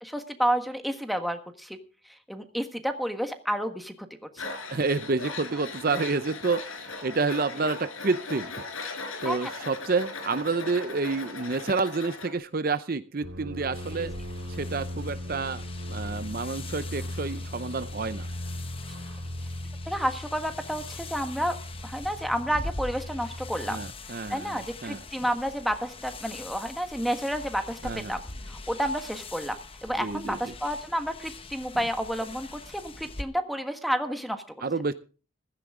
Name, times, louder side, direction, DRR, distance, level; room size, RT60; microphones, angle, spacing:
voice 1, 0.0-1.8 2.1-3.9 4.3-4.5 9.2-9.5 13.9-14.0 19.9-21.6 21.8-23.8 24.3-28.2 28.5-34.4, equal, ahead, 6 dB, 1.5 m, -30 dB
Tools, 4.4-12.3, left 3 dB, 85° left, 4.7 m, -38 dB
voice 2, 4.7-8.5 9.2-14.1 14.5-15.6 15.9-18.3 23.7-25.0 27.8-28.2 30.0-30.5 34.6-34.9, right 4 dB, 45° right, 12 dB, 0.6 m, -29 dB
sound 1, 13.2-23.9, left 1 dB, 70° right, 3.7 m, -38 dB
sound 2, 13.7-33.2, left 3 dB, 25° left, 1.0 m, -43 dB
15.5 x 15.0 x 3.7 m, 0.37 s
head